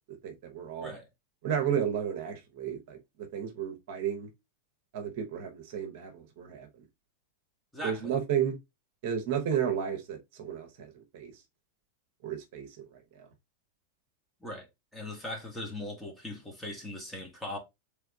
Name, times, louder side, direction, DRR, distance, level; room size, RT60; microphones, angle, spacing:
voice 1, 0.2-0.9 1.4-4.3 4.9-6.7 7.8-8.6 9.0-11.3 12.2-12.8 13.1-13.3, right 8 dB, 50° right, 0.9 m, -33 dB
voice 2, 7.7-8.1 14.4-14.7 14.9-17.6, left 1 dB, 5° left, 1.2 m, -39 dB
3.5 x 3.3 x 3.4 m
figure-of-eight pair, 90°, 0 cm